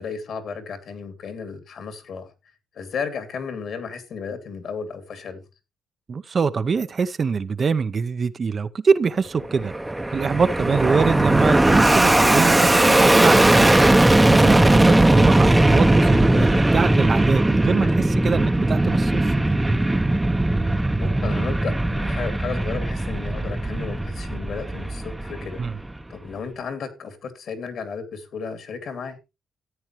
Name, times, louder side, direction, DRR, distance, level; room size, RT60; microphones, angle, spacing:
voice 1, 0.0-2.3 2.7-5.4 16.9-17.0 17.8-18.0 21.0-25.6 26.1-29.2, left 5 dB, 65° left, 2.6 m, -33 dB
voice 2, 6.1-9.7 10.1-13.8 14.2-19.4 25.6-25.7, right 5 dB, 40° right, 0.7 m, -24 dB
Fixed-wing aircraft airplane, 9.4-26.0, right 1 dB, 10° right, 0.8 m, -18 dB
14.0 x 8.8 x 3.1 m
cardioid pair, 90°, 0 cm